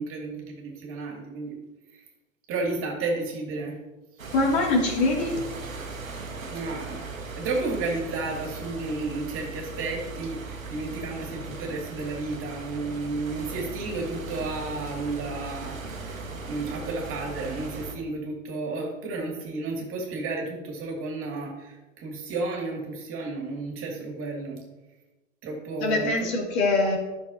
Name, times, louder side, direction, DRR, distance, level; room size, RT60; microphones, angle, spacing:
voice 1, 0.0-1.6 1.9-2.0 2.5-3.8 6.5-7.1 7.4-24.6 25.4-26.2, right 3 dB, 35° right, 0 dB, 2.5 m, -32 dB
sound 1, 4.2-17.9, right 3 dB, 85° right, 1.3 m, -38 dB
voice 2, 4.3-5.4 25.8-27.0, left 2 dB, 50° left, -1 dB, 2.6 m, -23 dB
12.5 x 6.4 x 2.8 m, 1.1 s
figure-of-eight pair, 100°, 40 cm